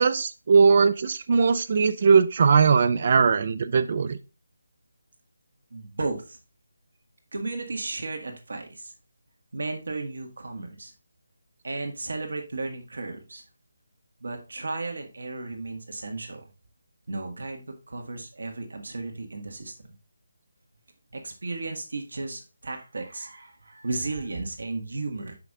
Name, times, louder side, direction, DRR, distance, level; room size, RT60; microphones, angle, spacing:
voice 1, 0.0-4.2, right 5 dB, 45° right, 13 dB, 0.6 m, -20 dB
voice 2, 5.7-6.4 7.3-8.9 9.5-10.9 11.6-13.4 14.2-16.4 17.1-19.9 21.1-25.4, right 3 dB, 70° right, 3 dB, 1.8 m, -34 dB
5.9 x 5.3 x 3.5 m, 0.30 s
figure-of-eight pair, 160°, 0 cm